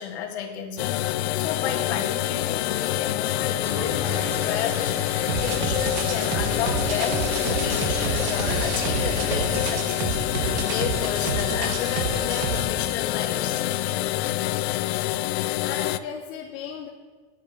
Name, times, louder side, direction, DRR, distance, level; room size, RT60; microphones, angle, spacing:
voice 1, 0.0-13.6, left 8 dB, 90° left, 3 dB, 2.1 m, -32 dB
sound 1, 0.8-16.0, left 15 dB, 70° left, 0.6 m, -26 dB
Sink (filling or washing), 3.5-10.4, left 1 dB, 5° right, 2.1 m, -35 dB
sound 2, 5.3-12.7, right 6 dB, 60° right, 1.5 m, -30 dB
voice 2, 15.6-16.9, left 7 dB, 35° left, 2 dB, 0.9 m, -36 dB
9.0 x 8.1 x 8.4 m, 1.4 s
supercardioid pair, 160°, 33 cm